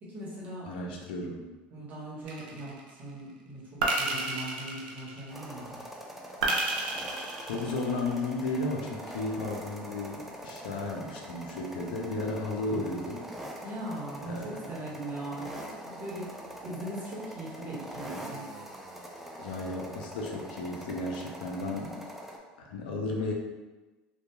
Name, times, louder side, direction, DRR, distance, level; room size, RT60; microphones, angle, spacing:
voice 1, 0.0-0.9 1.7-5.8 13.6-16.4 16.6-18.4, right 1 dB, 35° right, -6 dB, 1.1 m, -40 dB
voice 2, 0.6-1.4 7.5-13.3 14.3-14.4 19.4-22.0 22.6-23.3, left 2 dB, 90° left, 0 dB, 0.5 m, -34 dB
sound 1, 2.3-2.9 3.8-5.5 6.4-8.2, right 2 dB, 90° right, 0.4 m, -31 dB
sound 2, 5.3-22.4, right 1 dB, 5° right, 0.4 m, -43 dB
2.8 x 2.3 x 2.2 m, 1.2 s
supercardioid pair, 100°, 5 cm